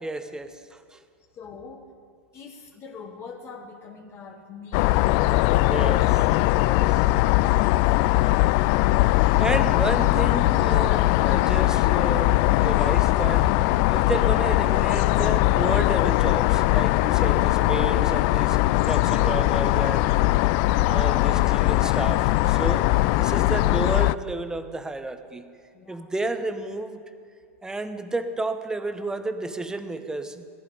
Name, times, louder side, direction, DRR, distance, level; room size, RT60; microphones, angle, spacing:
voice 1, 0.0-1.1 5.6-6.1 6.5-6.8 9.2-18.6 18.8-20.3 20.9-25.5 25.9-27.0 27.6-30.5, right 2 dB, 10° right, 9 dB, 1.1 m, -31 dB
voice 2, 1.3-1.9 2.3-6.0 25.7-26.1, left 5 dB, 30° left, 3 dB, 1.5 m, -44 dB
sound 1, 4.7-24.2, left 18 dB, 50° left, 0.3 m, -20 dB
18.0 x 15.0 x 5.1 m, 2.2 s
hypercardioid pair, 100°, 8 cm